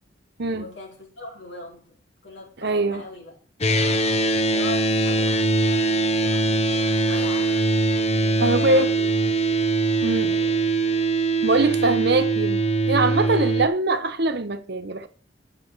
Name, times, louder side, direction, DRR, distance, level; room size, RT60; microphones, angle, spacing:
voice 1, 0.5-1.9 2.2-3.3 3.8-4.1 4.5-7.6 8.2-10.6 13.1-13.6, left 1 dB, 75° left, 4.6 m, -40 dB
voice 2, 2.6-3.0 7.1-7.2 8.4-8.9 10.0-10.3 11.4-12.6 12.9-15.1, right 2 dB, 60° right, 1.0 m, -22 dB
sound 1, 3.6-13.7, right 2 dB, 35° left, 0.8 m, -22 dB
10.5 x 7.6 x 4.7 m
head